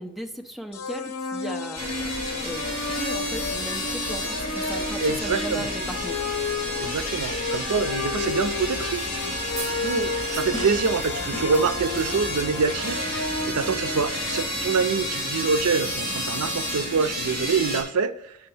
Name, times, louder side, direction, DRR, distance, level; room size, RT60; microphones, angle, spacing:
voice 1, 0.0-2.2 2.4-6.2, equal, ahead, 3 dB, 0.6 m, -37 dB
sound 1, 0.7-14.4, left 4 dB, 80° left, 0.6 m, -32 dB
sound 2, 1.7-17.8, equal, 25° right, 3.6 m, -31 dB
voice 2, 5.0-5.7 6.8-9.0 9.6-18.4, right 5 dB, 85° right, 12 dB, 0.5 m, -26 dB
sound 3, 9.6-12.6, right 2 dB, 60° right, 1.8 m, -39 dB
6.0 x 5.7 x 7.0 m, 0.78 s
head